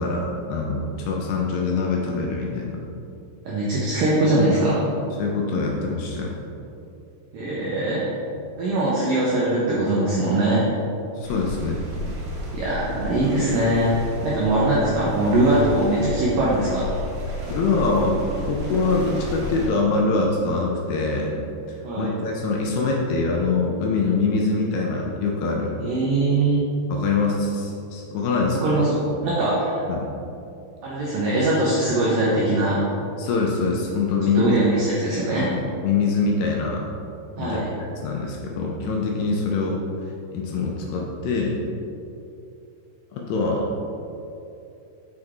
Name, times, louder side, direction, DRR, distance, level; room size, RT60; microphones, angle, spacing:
voice 1, 0.0-2.8 5.2-6.3 11.2-11.9 17.5-18.2 18.5-21.4 21.7-25.8 26.9-28.7 29.9-30.1 33.2-34.6 35.5-36.8 37.4-37.6 38.0-39.8 40.3-41.6 43.1-43.7, left 3 dB, 80° left, -1 dB, 2.3 m, -24 dB
voice 2, 3.5-4.9 7.3-8.0 8.6-10.7 12.5-13.9 14.2-16.9 21.8-22.1 25.8-26.6 28.6-28.9 29.2-29.8 30.8-32.8 34.4-35.5 37.4-37.7, right 2 dB, 90° right, -7 dB, 1.9 m, -21 dB
sound 1, 11.2-19.7, left 1 dB, 75° right, 1.8 m, -32 dB
6.6 x 6.1 x 3.7 m, 2.8 s
omnidirectional pair, 5.4 m